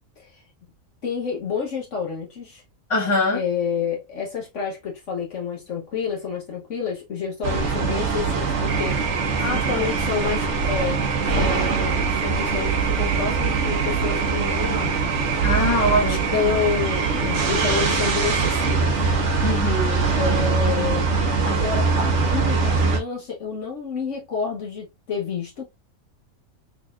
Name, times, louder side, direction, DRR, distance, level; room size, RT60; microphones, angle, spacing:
voice 1, 1.0-2.6 3.3-11.0 11.3-14.9 16.0-19.1 20.2-21.1 21.4-25.6, left 6 dB, 60° left, 1.3 m, -29 dB
voice 2, 2.9-3.4 9.4-9.8 15.4-16.2 19.4-20.0, left 1 dB, 20° left, 1.3 m, -23 dB
sound 1, 7.4-23.0, right 4 dB, 55° right, 1.3 m, -23 dB
sound 2, 8.7-18.7, right 7 dB, 85° right, 1.2 m, -32 dB
4.0 x 3.4 x 2.4 m
omnidirectional pair, 1.5 m